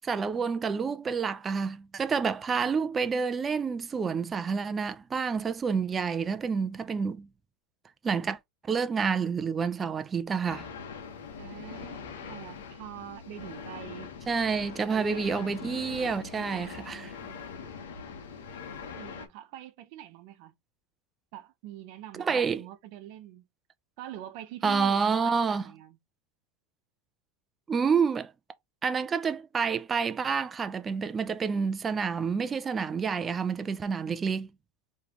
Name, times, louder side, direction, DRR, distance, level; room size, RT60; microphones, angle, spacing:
voice 1, 0.0-7.3 8.0-8.4 8.7-10.7 14.3-17.2 22.2-22.6 24.6-25.7 27.7-28.3 28.8-34.5, right 5 dB, 25° right, 0.5 m, -28 dB
sound 1, 10.5-19.3, left 6 dB, 80° left, 1.2 m, -42 dB
voice 2, 11.4-14.1 14.9-15.5 16.7-17.4 18.9-20.5 21.3-23.4 24.0-26.0, right 12 dB, 60° right, 0.9 m, -45 dB
5.0 x 3.3 x 2.9 m
hypercardioid pair, 105°, 0 cm